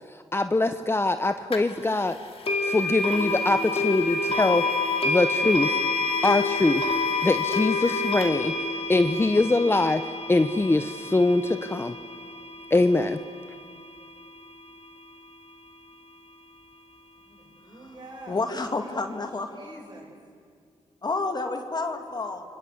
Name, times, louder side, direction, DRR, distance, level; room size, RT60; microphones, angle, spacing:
voice 1, 0.3-2.2 2.6-4.7 5.0-5.8 6.2-6.9 7.2-8.6 8.9-10.0 10.3-11.9 12.7-13.2, left 2 dB, 20° left, 9 dB, 0.9 m, -23 dB
sound 1, 1.5-1.6 2.5-13.4, left 3 dB, 60° left, 2.8 m, -28 dB
voice 2, 17.2-18.4 18.8-19.2 19.5-20.1, right 1 dB, 40° right, 1 dB, 7.6 m, -46 dB
voice 3, 18.3-19.5 21.0-22.4, left 3 dB, 40° left, 5 dB, 2.3 m, -29 dB
28.5 x 24.5 x 8.3 m, 2.2 s
cardioid pair, 70°, 11 cm